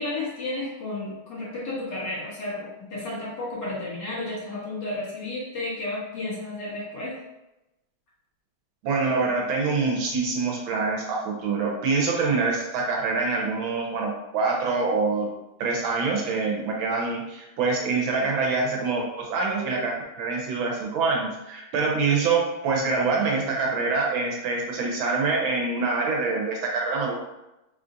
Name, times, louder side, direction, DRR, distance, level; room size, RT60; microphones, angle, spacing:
voice 1, 0.0-7.2, left 2 dB, 55° left, -7 dB, 1.9 m, -32 dB
voice 2, 8.8-15.3 15.6-27.2, right 4 dB, 75° right, -1 dB, 1.4 m, -25 dB
4.3 x 2.4 x 3.8 m, 0.94 s
omnidirectional pair, 2.4 m